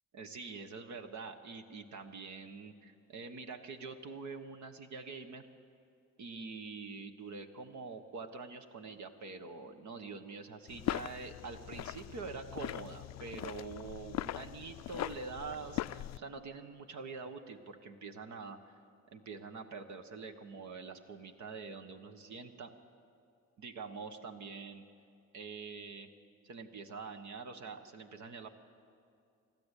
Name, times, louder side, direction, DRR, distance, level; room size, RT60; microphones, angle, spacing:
voice 1, 0.1-5.5 6.2-18.8 19.1-22.7 23.6-24.8 25.3-26.1 26.4-28.5, right 4 dB, 70° right, 7 dB, 1.3 m, -45 dB
sound 1, 10.7-16.2, left 14 dB, 60° left, 0.4 m, -40 dB
27.0 x 12.5 x 8.3 m, 2.4 s
cardioid pair, 90°, 30 cm